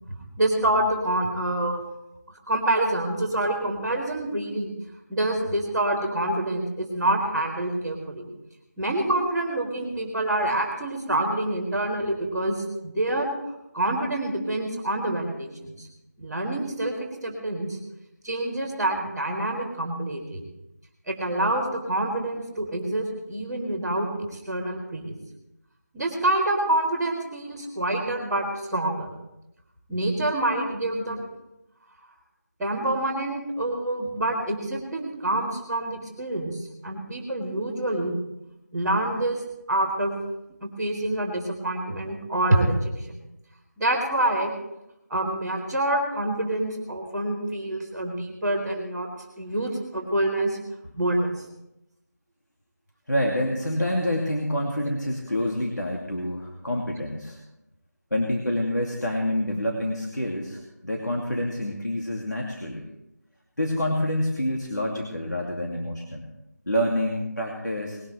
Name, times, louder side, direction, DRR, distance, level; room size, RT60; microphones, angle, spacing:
voice 1, 0.4-1.8 2.5-4.7 5.1-8.3 8.8-13.3 13.7-15.9 16.2-16.9 17.2-17.8 18.2-20.4 21.1-25.1 25.9-29.1 29.9-31.2 32.6-38.2 38.7-39.4 39.7-40.1 40.6-43.2 43.8-44.5 45.1-49.1 49.4-50.6 51.0-51.3, right 1 dB, 5° right, -16 dB, 1.9 m, -26 dB
voice 2, 53.1-57.4 58.1-62.8 63.6-66.2 66.7-68.0, left 1 dB, 85° left, -1 dB, 2.6 m, -27 dB
20.5 x 13.0 x 3.4 m, 0.89 s
figure-of-eight pair, 170°, 9 cm